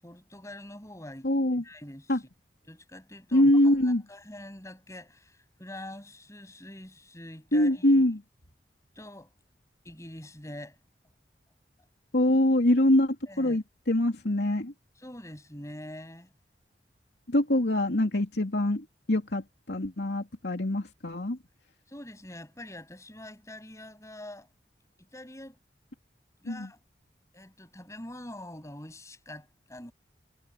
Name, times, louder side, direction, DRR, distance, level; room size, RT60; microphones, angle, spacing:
voice 1, 0.0-2.3 2.7-8.0 9.0-9.3 9.8-10.8 13.3-13.6 14.9-16.3 21.9-24.5 25.0-25.6 26.4-26.8 27.3-29.9, left 1 dB, 15° left, 7.6 m, -45 dB
voice 2, 1.2-1.6 2.1-2.2 3.3-4.0 7.5-8.2 12.1-14.7 17.3-21.4 26.5-26.7, left 1 dB, 75° left, 2.7 m, -24 dB
head